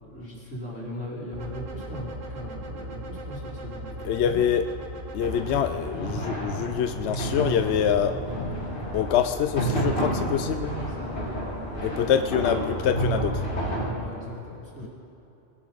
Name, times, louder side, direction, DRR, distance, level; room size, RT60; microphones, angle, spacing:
voice 1, 0.0-4.4 10.7-12.1 13.9-14.9, equal, 85° left, -6 dB, 3.8 m, -39 dB
sound 1, 1.3-5.7, right 1 dB, 45° right, 1.2 m, -38 dB
voice 2, 4.0-4.6 5.1-8.1 8.9-10.7 11.8-13.5, left 9 dB, 70° left, 8 dB, 0.8 m, -25 dB
sound 2, 5.2-13.9, right 1 dB, 45° left, 2.7 m, -30 dB
21.5 x 11.0 x 4.0 m, 2.9 s
omnidirectional pair, 1.3 m